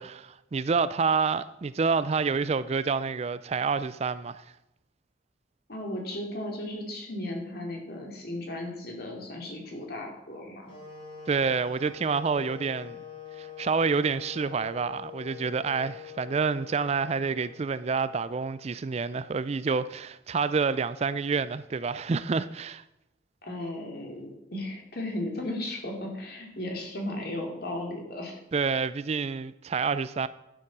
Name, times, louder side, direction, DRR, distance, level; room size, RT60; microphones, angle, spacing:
voice 1, 0.0-4.5 11.3-13.0 13.4-22.8 28.5-30.3, right 5 dB, 35° right, 0.4 m, -28 dB
voice 2, 5.7-10.7 23.4-28.4, left 1 dB, 55° left, 2.8 m, -35 dB
sound 1, 10.6-18.7, left 8 dB, 30° left, 2.9 m, -45 dB
11.5 x 7.1 x 6.0 m
head